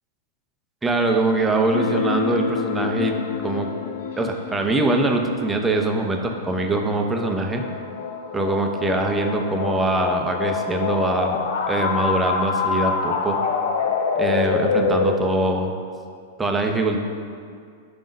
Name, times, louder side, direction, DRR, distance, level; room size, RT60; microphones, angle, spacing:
voice 1, 0.8-3.2 3.4-3.7 4.2-7.6 8.3-11.4 11.7-13.4 14.2-15.7 16.4-17.0, right 2 dB, 15° right, 3 dB, 0.6 m, -23 dB
sound 1, 1.7-15.2, left 5 dB, 70° left, 0.5 m, -26 dB
5.0 x 3.8 x 5.1 m, 2.2 s
hypercardioid pair, 110°, 0 cm